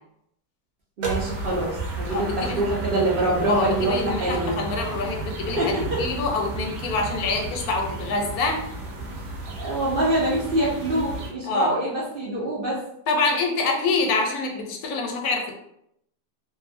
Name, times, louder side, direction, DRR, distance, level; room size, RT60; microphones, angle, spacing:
sound 1, 1.0-11.3, right 3 dB, 60° right, 0.8 m, -33 dB
voice 1, 1.0-4.5 5.6-6.0 9.6-12.8, right 1 dB, 85° right, -6 dB, 0.4 m, -25 dB
voice 2, 2.1-2.6 3.5-5.7 6.0-8.6 11.4-11.7 13.1-15.5, left 3 dB, 70° left, 2 dB, 0.9 m, -26 dB
2.6 x 2.5 x 2.4 m, 0.76 s
omnidirectional pair, 1.8 m